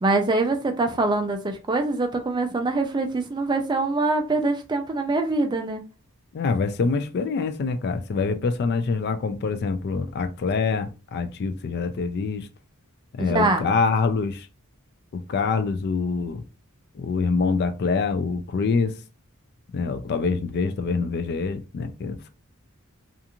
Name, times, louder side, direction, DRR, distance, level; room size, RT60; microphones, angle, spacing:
voice 1, 0.0-5.8 13.2-13.7, right 2 dB, 20° right, 0.4 m, -24 dB
voice 2, 6.3-12.5 13.2-14.5 15.1-16.4 16.9-18.9 19.7-22.3, left 4 dB, 50° left, 0.3 m, -25 dB
2.5 x 2.4 x 2.8 m
head